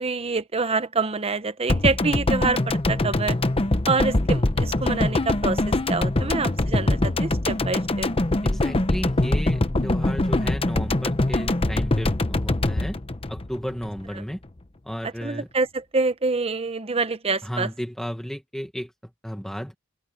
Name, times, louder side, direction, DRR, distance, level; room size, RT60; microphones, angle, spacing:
voice 1, 0.0-3.4 3.9-8.1 15.2-17.7, right 4 dB, 30° right, 0.9 m, -26 dB
sound 1, 1.7-14.0 14.3-14.4, left 2 dB, 25° left, 0.9 m, -23 dB
voice 2, 8.4-13.0 13.3-14.4 14.8-15.5 17.4-18.9 19.2-19.7, equal, ahead, 1.7 m, -33 dB
open air
head